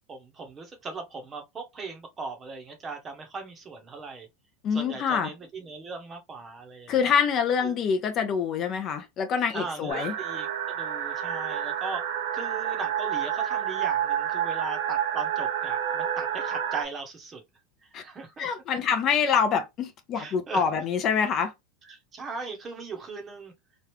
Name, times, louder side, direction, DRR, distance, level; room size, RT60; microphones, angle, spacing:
voice 1, 0.1-4.3 4.7-7.1 7.6-7.8 9.5-12.0 12.3-17.4 17.8-18.5 20.1-20.7 21.9-23.5, right 4 dB, 20° right, 0.9 m, -38 dB
voice 2, 4.6-5.3 6.9-10.1 17.9-18.0 18.4-21.5, left 6 dB, 35° left, 0.5 m, -25 dB
sound 1, 9.9-16.8, right 9 dB, 80° right, 0.8 m, -29 dB
3.0 x 2.4 x 3.2 m
supercardioid pair, 150°, 0 cm